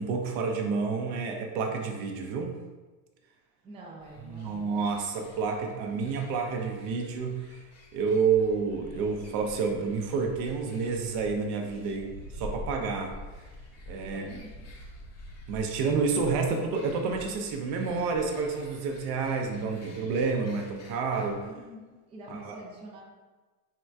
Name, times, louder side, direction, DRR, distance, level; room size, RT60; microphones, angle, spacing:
voice 1, 0.0-2.6 4.3-7.6 7.9-12.1 12.4-13.1 13.9-14.3 15.5-21.5 22.3-22.6, right 5 dB, 55° right, 3 dB, 0.6 m, -29 dB
voice 2, 3.6-4.9 11.9-12.0 14.0-14.7 21.4-23.0, right 2 dB, 15° right, -3 dB, 0.4 m, -47 dB
sound 1, 4.0-21.5, left 1 dB, 35° left, 0.7 m, -47 dB
3.7 x 2.3 x 4.4 m, 1.3 s
supercardioid pair, 140°, 45 cm